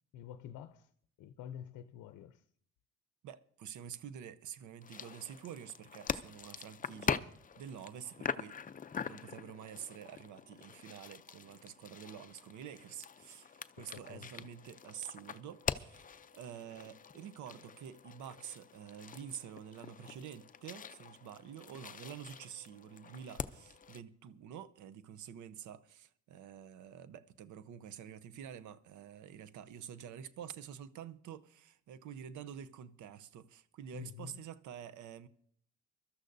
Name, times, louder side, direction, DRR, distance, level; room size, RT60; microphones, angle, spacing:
voice 1, 0.1-0.9 1.2-2.4 13.8-14.5 33.9-34.4, left 9 dB, 80° left, 0.6 m, -48 dB
voice 2, 3.2-7.3 7.6-8.6 9.0-35.3, right 9 dB, 75° right, 0.7 m, -48 dB
sound 1, 4.8-24.0, left 6 dB, 30° left, 0.5 m, -43 dB
23.5 x 13.0 x 2.6 m
cardioid pair, 90°, 30 cm